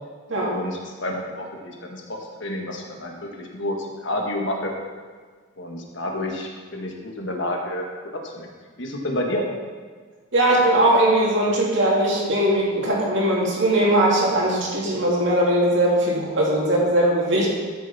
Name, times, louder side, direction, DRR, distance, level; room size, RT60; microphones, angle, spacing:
voice 1, 0.4-4.7 5.6-7.8 8.2-8.5 8.8-9.4, left 1 dB, 60° left, 1 dB, 1.5 m, -29 dB
voice 2, 10.3-17.5, right 1 dB, 60° right, -3 dB, 2.5 m, -20 dB
13.0 x 6.9 x 4.2 m, 1.5 s
head